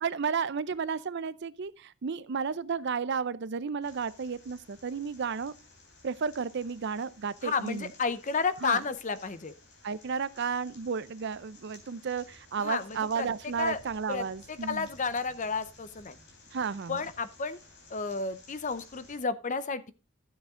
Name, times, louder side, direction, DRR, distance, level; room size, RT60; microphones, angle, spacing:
voice 1, 0.0-5.5 6.0-7.9 8.6-8.8 9.8-14.9 16.5-17.0, right 5 dB, 55° right, 0.5 m, -33 dB
sound 1, 3.8-19.2, left 2 dB, 55° left, 3.5 m, -56 dB
voice 2, 7.4-9.5 12.6-13.8 14.1-16.2 16.9-17.6 17.9-19.9, left 4 dB, 35° left, 0.7 m, -32 dB
12.5 x 7.3 x 3.7 m
head